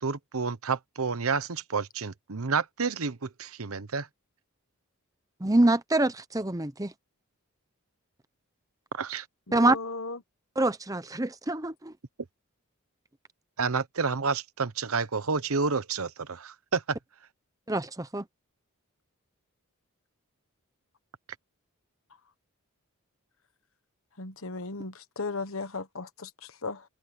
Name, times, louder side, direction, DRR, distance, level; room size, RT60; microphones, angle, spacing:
voice 1, 0.0-4.1 8.9-9.3 13.6-17.0, right 5 dB, 75° right, 1.0 m, -30 dB
voice 2, 5.4-6.9 9.5-9.8 10.6-11.9 17.7-18.2, right 2 dB, 15° right, 0.8 m, -25 dB
voice 3, 9.5-10.2 24.2-26.8, left 3 dB, 65° left, 1.3 m, -36 dB
open air
head